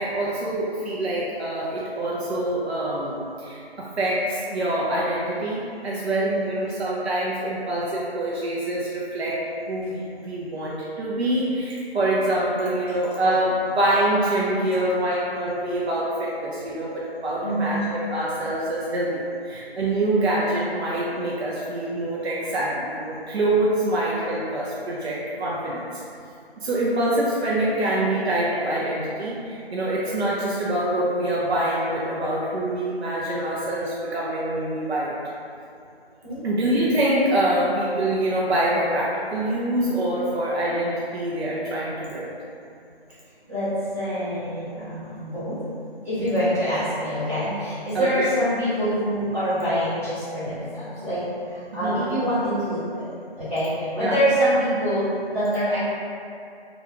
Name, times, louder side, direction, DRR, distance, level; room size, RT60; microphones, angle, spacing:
voice 1, 0.0-9.4 9.7-26.0 26.6-35.2 36.4-42.3 47.9-48.3 51.7-52.2 54.0-54.1, right 1 dB, 85° right, -6 dB, 0.6 m, -25 dB
voice 2, 6.2-6.6 17.4-17.8 36.2-36.5 43.5-45.6 46.0-51.2 51.5-53.1 53.4-55.8, equal, 15° right, -19 dB, 1.2 m, -25 dB
3.0 x 2.3 x 2.3 m, 2.5 s
figure-of-eight pair, 175°, 31 cm